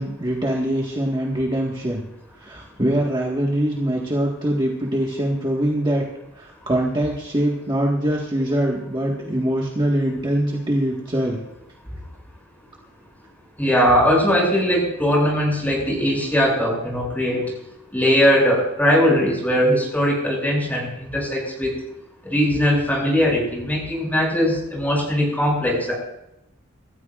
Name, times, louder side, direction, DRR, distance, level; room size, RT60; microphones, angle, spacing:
voice 1, 0.0-2.0 2.3-6.0 6.4-11.4, right 1 dB, 25° right, -3 dB, 1.7 m, -23 dB
voice 2, 13.6-17.4 17.9-21.7 22.3-25.9, equal, 10° left, -3 dB, 7.1 m, -20 dB
27.0 x 14.0 x 2.5 m, 0.87 s
head